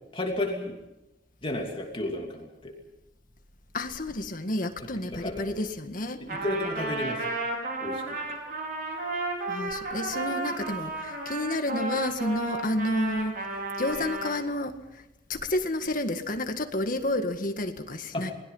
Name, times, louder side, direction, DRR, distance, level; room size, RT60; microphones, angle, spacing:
voice 1, 0.1-0.8 1.4-2.7 4.8-5.6 6.2-7.2 7.8-8.2 18.1-18.2, left 1 dB, 30° left, 1 dB, 2.9 m, -32 dB
voice 2, 3.7-6.3 9.5-13.4 13.8-15.0 15.3-18.3, left 1 dB, 50° left, 6 dB, 1.9 m, -30 dB
Trumpet, 6.3-14.4, right 2 dB, 55° right, 5.6 m, -33 dB
28.5 x 21.0 x 5.6 m, 0.95 s
head